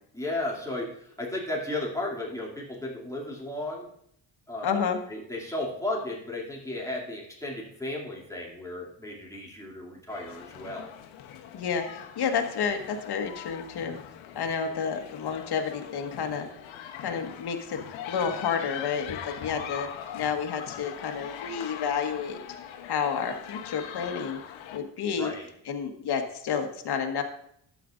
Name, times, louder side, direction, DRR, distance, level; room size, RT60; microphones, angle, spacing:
voice 1, 0.1-3.9 4.5-10.9 25.2-25.5, left 1 dB, 5° left, -4 dB, 2.6 m, -34 dB
voice 2, 4.6-5.0 11.5-14.0 14.3-16.5 17.0-19.9 20.1-22.4 22.8-24.4 24.7-25.3 25.7-27.2, left 6 dB, 55° left, 5 dB, 1.5 m, -30 dB
sound 1, 10.1-24.8, left 9 dB, 80° left, 1.1 m, -42 dB
11.5 x 8.5 x 2.5 m, 0.71 s
supercardioid pair, 80°, 46 cm